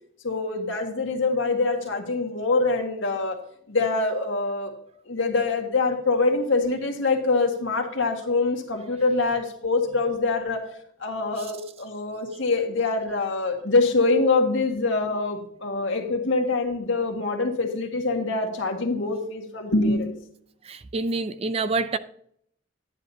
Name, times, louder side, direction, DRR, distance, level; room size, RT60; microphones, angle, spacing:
voice 1, 0.2-3.4 3.7-4.7 5.1-10.6 11.0-20.1, left 3 dB, 75° left, 1.8 m, -24 dB
voice 2, 20.7-22.0, right 3 dB, 30° right, 0.4 m, -27 dB
10.5 x 9.4 x 2.8 m
head